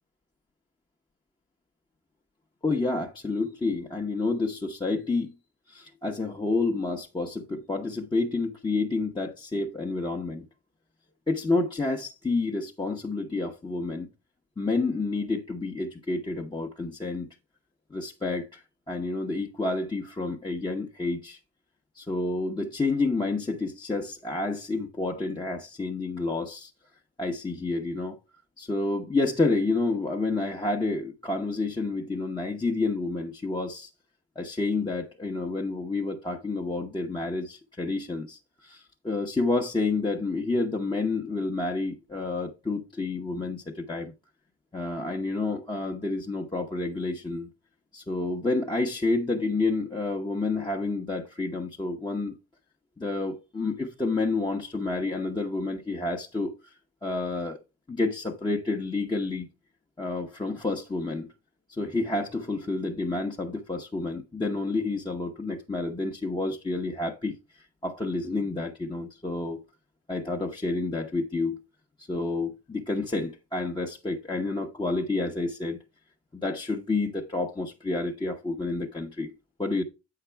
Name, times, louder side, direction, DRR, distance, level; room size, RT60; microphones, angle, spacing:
voice 1, 2.6-5.3 5.7-10.4 11.3-14.1 14.6-17.3 17.9-21.4 21.9-26.7 27.2-28.2 28.6-33.9 34.4-44.1 44.7-47.5 47.9-52.4 53.0-56.7 57.0-57.6 57.9-59.5 60.0-61.3 61.7-69.6 70.1-71.6 72.0-75.8 76.3-79.3 79.6-79.8, left 3 dB, 15° left, 0.9 m, -29 dB
8.0 x 5.8 x 3.4 m
cardioid pair, 90°, 30 cm